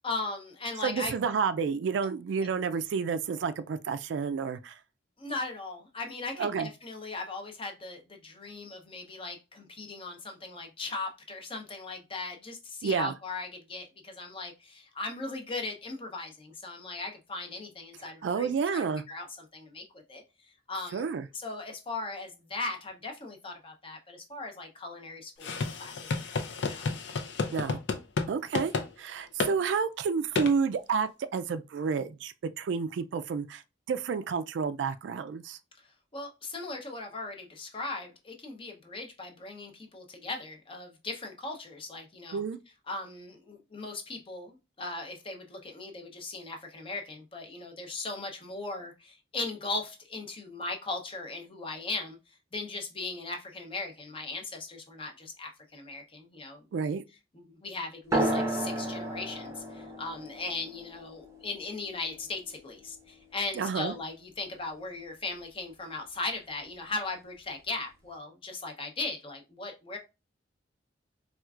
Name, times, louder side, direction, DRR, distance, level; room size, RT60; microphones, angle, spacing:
voice 1, 0.0-1.1 5.2-20.2 20.7-21.1 21.3-26.9 35.8-42.4 42.9-52.2 52.5-56.8 57.3-70.0, left 3 dB, 30° left, 0.7 m, -38 dB
voice 2, 0.8-4.8 6.4-6.7 12.8-13.1 18.0-19.0 20.9-21.3 27.5-27.8 28.3-28.7 29.0-33.6 33.9-35.6 42.3-42.6 56.7-57.0 63.6-63.9, right 5 dB, 70° right, 0.3 m, -30 dB
sound 1, 25.4-28.3 28.5-28.9 29.4-29.5 30.4-30.5, left 4 dB, 70° left, 0.5 m, -31 dB
sound 2, 58.1-63.1, right 1 dB, 15° right, 0.6 m, -33 dB
4.4 x 2.4 x 2.3 m
head